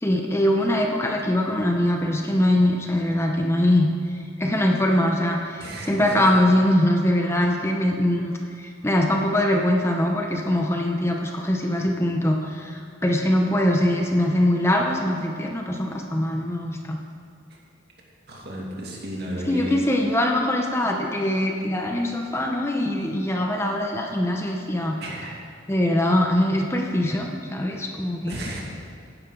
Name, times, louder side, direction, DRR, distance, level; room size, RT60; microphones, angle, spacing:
voice 1, 0.0-17.0 19.5-25.0 25.7-28.4, left 1 dB, 15° left, 1 dB, 0.8 m, -22 dB
voice 2, 5.6-6.2 17.5-17.6 18.3-19.7 25.0-25.4 28.3-28.6, right 1 dB, 55° right, -3 dB, 2.5 m, -33 dB
16.0 x 10.5 x 3.9 m, 2.4 s
head